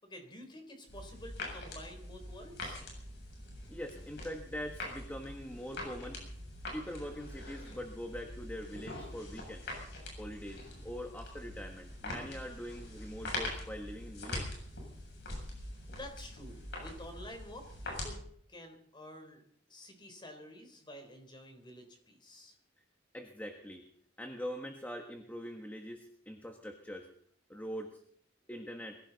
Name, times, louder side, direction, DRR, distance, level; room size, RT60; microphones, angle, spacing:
voice 1, 0.0-2.8 15.9-18.2 18.5-19.4 19.7-22.6, left 1 dB, 25° left, 5 dB, 3.9 m, -50 dB
sound 1, 0.9-18.1, left 1 dB, 65° left, 7.6 m, -44 dB
voice 2, 3.7-6.2 6.7-9.7 10.2-14.5 23.1-23.9 24.2-27.1 27.5-28.0 28.5-29.0, equal, 10° left, 3 dB, 1.4 m, -43 dB
22.5 x 15.5 x 4.1 m, 0.64 s
head